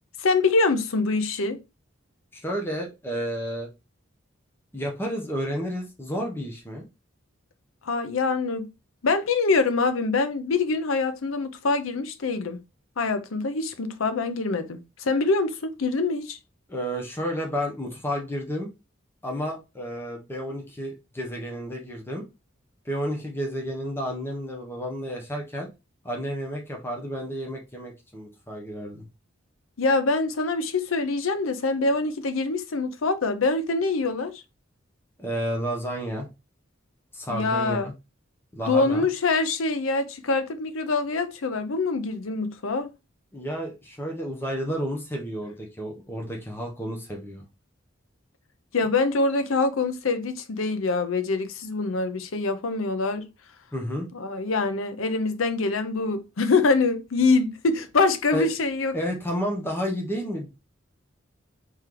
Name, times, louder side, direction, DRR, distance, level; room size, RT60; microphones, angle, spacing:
voice 1, 0.2-1.6 7.8-8.7 9.0-12.6 13.0-16.4 29.8-34.4 37.3-37.9 38.6-42.9 48.7-53.3 54.1-59.0, left 3 dB, 85° left, 0.7 m, -24 dB
voice 2, 2.3-3.7 4.7-6.9 16.7-18.7 19.2-22.2 22.8-25.7 26.0-29.0 35.2-36.3 37.1-37.9 38.5-39.0 43.3-47.4 53.7-54.1 58.3-58.5 58.9-60.5, equal, 10° left, 1.0 m, -31 dB
4.3 x 3.2 x 3.8 m
head